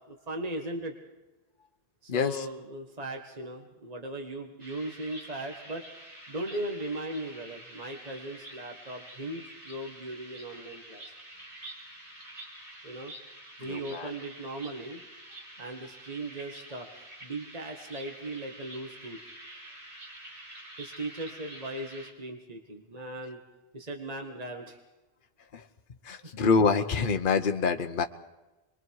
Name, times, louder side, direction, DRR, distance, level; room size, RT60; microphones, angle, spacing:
voice 1, 0.1-0.9 2.0-5.9 6.3-11.0 12.8-13.1 13.6-15.0 15.6-19.2 20.8-23.4 23.7-24.8 26.1-26.3, right 1 dB, 40° right, 3 dB, 1.8 m, -38 dB
voice 2, 2.1-2.4 13.6-14.1 25.5-25.6 26.0-28.0, left 5 dB, 55° left, 6 dB, 1.1 m, -26 dB
sound 1, 4.6-22.1, right 1 dB, 60° right, 4.3 m, -48 dB
29.5 x 22.5 x 4.8 m, 1.1 s
omnidirectional pair, 1.0 m